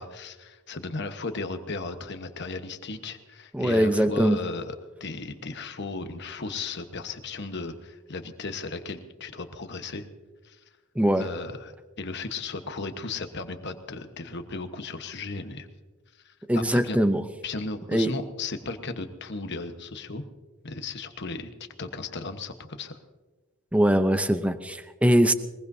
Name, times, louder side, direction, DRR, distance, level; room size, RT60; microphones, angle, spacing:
voice 1, 0.0-10.1 10.4-10.6 11.2-15.7 16.2-17.0 17.4-20.2 20.6-21.5 21.8-23.0, left 3 dB, 55° left, 8 dB, 1.2 m, -35 dB
voice 2, 3.5-4.4 11.0-11.3 16.5-17.2 17.9-18.1 23.7-25.3, equal, 5° right, 10 dB, 0.6 m, -22 dB
22.0 x 21.0 x 2.7 m, 1.2 s
head